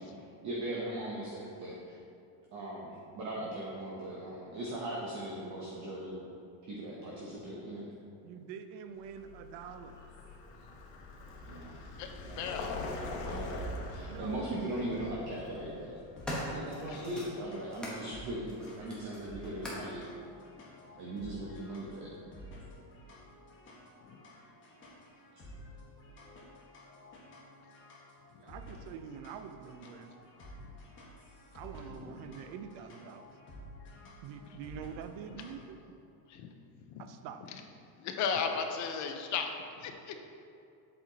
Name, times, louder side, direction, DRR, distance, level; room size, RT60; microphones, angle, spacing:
voice 1, 0.0-2.0 2.5-6.3 6.7-7.8 10.2-10.5 11.5-11.8 12.2-12.5 13.2-15.9 16.5-20.1 20.9-22.1, right 1 dB, 35° right, -4 dB, 0.9 m, -39 dB
voice 2, 8.2-10.0 14.1-14.6 28.3-30.1 31.5-33.3 34.2-35.8 37.0-37.4, right 7 dB, 60° right, 8 dB, 0.5 m, -45 dB
Vehicle, 9.1-17.9, left 2 dB, 70° left, 1.1 m, -43 dB
voice 3, 12.0-12.8 16.3-17.0 24.1-24.2 30.6-30.7 36.3-36.5 36.9-37.0 38.0-39.5 39.8-40.2, left 6 dB, 40° left, 5 dB, 0.5 m, -36 dB
sound 1, 15.7-18.0 18.5-20.0 20.8-20.9, equal, ahead, 0.9 m, -42 dB
sound 2, 16.0-35.7, left 1 dB, 25° left, 1.2 m, -52 dB
7.4 x 4.3 x 3.9 m, 2.5 s
cardioid pair, 160°, 46 cm